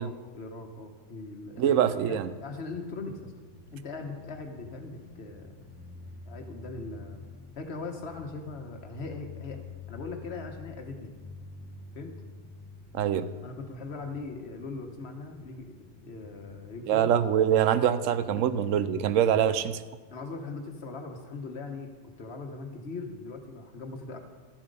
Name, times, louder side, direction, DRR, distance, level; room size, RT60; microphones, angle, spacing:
voice 1, 0.0-1.8 2.0-3.3 3.7-5.5 6.3-7.2 7.6-9.6 9.9-11.1 11.9-12.1 13.4-15.7 16.0-17.1 20.1-21.9 22.2-24.2, left 3 dB, 55° left, 4 dB, 1.3 m, -40 dB
voice 2, 1.6-2.3 12.9-13.3 16.9-19.8, right 9 dB, 80° right, 13 dB, 1.0 m, -24 dB
sound 1, 1.7-19.6, left 4 dB, 10° left, 0.8 m, -49 dB
12.5 x 7.4 x 5.3 m, 1.4 s
omnidirectional pair, 1.3 m